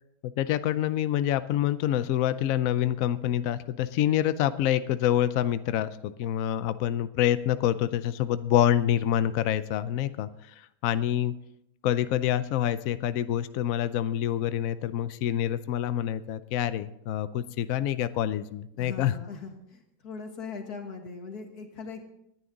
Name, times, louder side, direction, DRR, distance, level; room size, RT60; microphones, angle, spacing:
voice 1, 0.2-10.3 10.8-11.4 11.8-19.2, left 11 dB, 85° left, 13 dB, 0.7 m, -26 dB
voice 2, 18.7-22.0, left 4 dB, 50° left, 4 dB, 2.2 m, -40 dB
19.5 x 10.5 x 3.9 m, 0.79 s
omnidirectional pair, 2.1 m